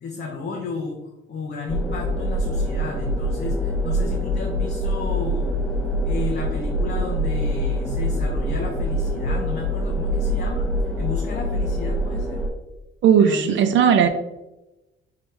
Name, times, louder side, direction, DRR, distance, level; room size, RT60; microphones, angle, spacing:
voice 1, 0.0-1.0 1.3-5.5 6.0-10.6 11.0-12.4 13.2-13.8, left 4 dB, 50° left, 0 dB, 0.7 m, -33 dB
sound 1, 1.7-12.5, equal, 5° left, 0.7 m, -24 dB
voice 2, 13.0-14.1, right 8 dB, 65° right, 7 dB, 0.4 m, -16 dB
4.6 x 3.5 x 3.2 m, 0.98 s
cardioid pair, 130°, 21 cm